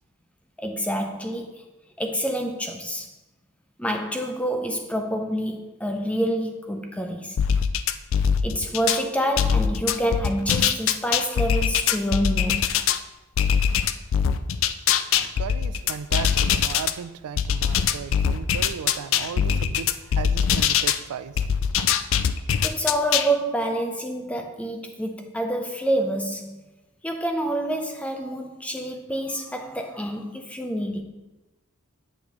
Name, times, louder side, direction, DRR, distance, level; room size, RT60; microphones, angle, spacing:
voice 1, 0.6-1.6 2.0-3.1 3.8-7.4 8.4-12.8 22.6-26.6 27.0-31.0, right 1 dB, 5° left, 4 dB, 0.5 m, -27 dB
sound 1, 7.4-9.0 9.4-13.0 13.4-16.9 17.4-21.0 21.4-23.3, left 8 dB, 60° left, 0.3 m, -22 dB
voice 2, 14.6-22.1, right 7 dB, 90° right, 13 dB, 0.4 m, -36 dB
8.4 x 5.7 x 3.0 m, 1.0 s
head